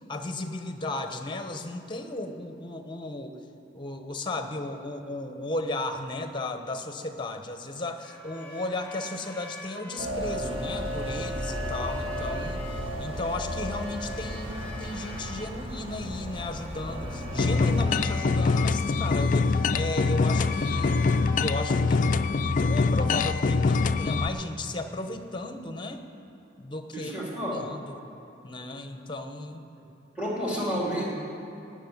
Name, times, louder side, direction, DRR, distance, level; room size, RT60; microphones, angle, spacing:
voice 1, 0.1-3.4 3.7-12.6 13.0-21.1 21.4-26.0 26.6-28.0 28.4-29.7, left 2 dB, 25° left, 7 dB, 1.0 m, -35 dB
sound 1, 8.0-22.1, left 1 dB, 10° left, 1.9 m, -45 dB
sound 2, 10.0-17.9, equal, 30° right, 1.8 m, -34 dB
sound 3, 17.4-24.3, left 4 dB, 45° left, 0.4 m, -24 dB
voice 2, 26.9-27.7 29.8-29.9 30.1-31.1, equal, 5° right, -4 dB, 2.8 m, -30 dB
17.5 x 6.4 x 9.5 m, 2.9 s
head